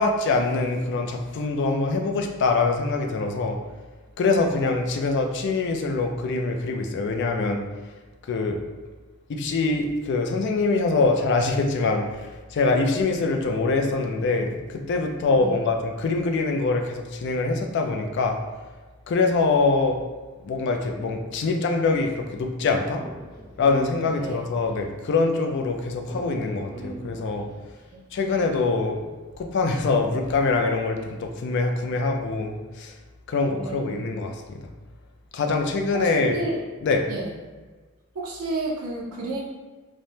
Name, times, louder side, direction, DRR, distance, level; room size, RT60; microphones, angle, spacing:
voice 1, 0.0-3.6 4.2-7.6 8.3-8.6 9.3-18.4 19.1-20.0 20.4-23.0 23.6-27.5 28.1-29.0 29.4-32.9 33.3-34.6 35.3-36.4 36.8-37.0, left 3 dB, 55° left, 3 dB, 0.3 m, -24 dB
Speech, 22.9-24.8 26.0-27.8, equal, 20° left, 0.9 m, -41 dB
voice 2, 33.6-34.1 35.9-36.6 37.1-37.3 38.1-39.4, right 2 dB, 80° right, -3 dB, 0.5 m, -31 dB
3.3 x 2.1 x 2.7 m, 1.3 s
head